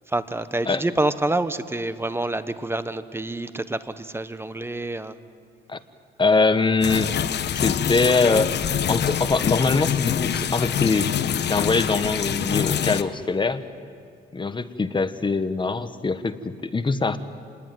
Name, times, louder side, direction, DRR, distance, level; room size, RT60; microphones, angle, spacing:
voice 1, 0.1-5.2, right 2 dB, 10° right, 13 dB, 1.1 m, -27 dB
voice 2, 6.2-7.2 7.5-8.5 8.9-11.1 11.5-13.6 14.3-17.2, left 4 dB, 25° left, 11 dB, 1.3 m, -23 dB
sound 1, 6.8-13.0, left 9 dB, 60° left, 1.1 m, -25 dB
27.5 x 20.5 x 9.3 m, 2.2 s
cardioid pair, 90°, 20 cm